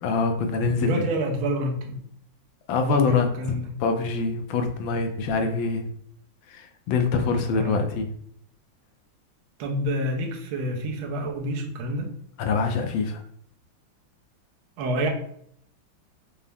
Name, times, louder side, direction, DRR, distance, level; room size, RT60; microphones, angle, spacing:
voice 1, 0.0-1.0 2.7-3.3 3.8-5.8 6.5-8.1 12.4-13.2, left 4 dB, 75° left, 5 dB, 1.3 m, -25 dB
voice 2, 0.8-2.0 2.8-3.8 7.5-7.8 9.6-12.1 14.8-15.1, equal, 80° right, 1 dB, 1.5 m, -28 dB
5.5 x 2.0 x 3.4 m, 0.67 s
omnidirectional pair, 2.3 m